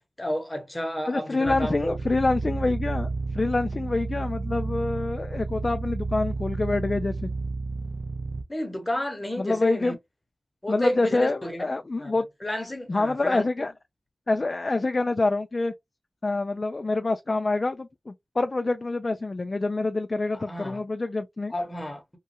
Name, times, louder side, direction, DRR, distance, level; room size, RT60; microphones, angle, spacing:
voice 1, 0.2-2.0 8.5-9.9 10.6-11.6 12.0-12.1 12.4-13.4 20.3-20.8 21.5-22.2, left 1 dB, 20° left, 0.9 m, -31 dB
voice 2, 1.1-7.3 9.4-10.0 10.7-12.3 12.9-13.7 14.3-15.7 16.2-21.5, left 2 dB, 40° left, 0.3 m, -26 dB
sound 1, 1.4-8.4, right 3 dB, 50° right, 0.5 m, -31 dB
3.0 x 2.3 x 2.8 m
wide cardioid pair, 75°, 0 cm